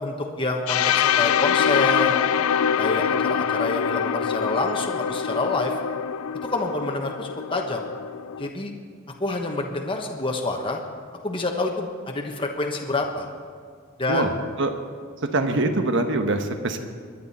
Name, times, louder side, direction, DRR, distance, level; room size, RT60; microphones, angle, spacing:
voice 1, 0.0-2.2 2.8-5.7 6.5-7.9 8.4-8.7 9.2-10.8 11.2-13.3 14.0-14.3, left 2 dB, 25° left, 1 dB, 1.2 m, -27 dB
sound 1, 0.7-8.5, left 8 dB, 75° left, 0.4 m, -24 dB
voice 2, 14.1-14.7 15.2-16.8, right 2 dB, 60° right, 6 dB, 1.1 m, -24 dB
23.5 x 10.5 x 4.3 m, 2.1 s
head